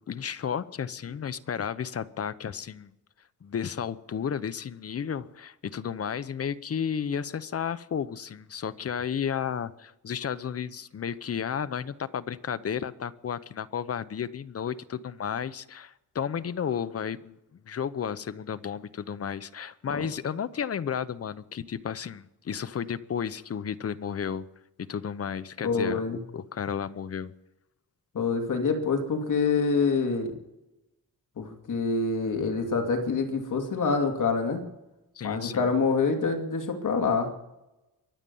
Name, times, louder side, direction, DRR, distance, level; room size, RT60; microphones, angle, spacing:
voice 1, 0.1-2.9 3.4-24.4 24.9-26.0 26.3-27.3 35.2-35.7, left 7 dB, 40° left, 14 dB, 0.8 m, -33 dB
voice 2, 25.6-26.2 28.1-30.3 31.4-34.6 35.2-37.3, left 4 dB, 55° left, 4 dB, 2.6 m, -26 dB
23.5 x 9.0 x 5.5 m, 0.92 s
wide cardioid pair, 135°, 36 cm